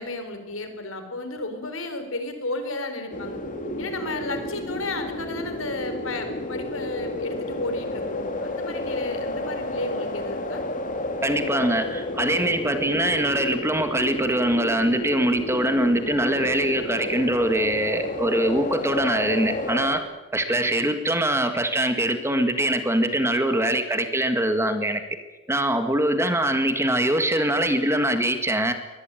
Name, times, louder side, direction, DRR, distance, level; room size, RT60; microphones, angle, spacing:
voice 1, 0.0-3.4 3.8-10.6, left 2 dB, 70° left, 7 dB, 4.4 m, -33 dB
sound 1, 3.1-20.0, left 1 dB, 40° left, 2.8 m, -31 dB
voice 2, 11.2-20.1 20.3-25.0 25.5-28.7, right 1 dB, 10° right, 8 dB, 1.8 m, -23 dB
24.0 x 19.5 x 9.1 m, 1.1 s
head